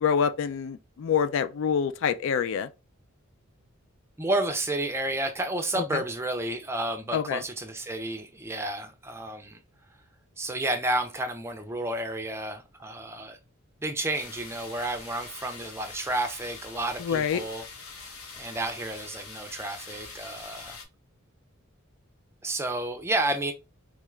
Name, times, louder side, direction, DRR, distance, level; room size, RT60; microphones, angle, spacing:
voice 1, 0.0-2.7 5.7-6.0 7.1-7.4 17.0-17.4, left 7 dB, 60° left, 0.3 m, -26 dB
voice 2, 4.2-9.6 10.4-13.4 13.8-17.6 18.3-20.8 22.4-23.5, right 1 dB, 10° right, 0.4 m, -31 dB
sound 1, 14.1-20.8, left 4 dB, 85° left, 0.8 m, -44 dB
3.7 x 2.4 x 3.1 m
head